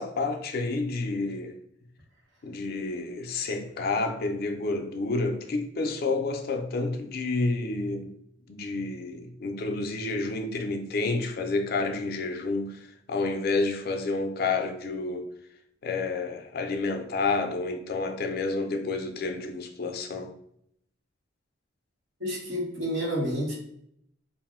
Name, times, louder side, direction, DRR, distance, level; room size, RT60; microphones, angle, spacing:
voice 1, 0.0-1.6 2.4-8.1 8.5-15.3 15.8-20.3, left 3 dB, 50° left, 0.4 m, -29 dB
voice 2, 22.2-23.6, equal, 70° right, 0.9 m, -29 dB
2.5 x 2.0 x 3.5 m
head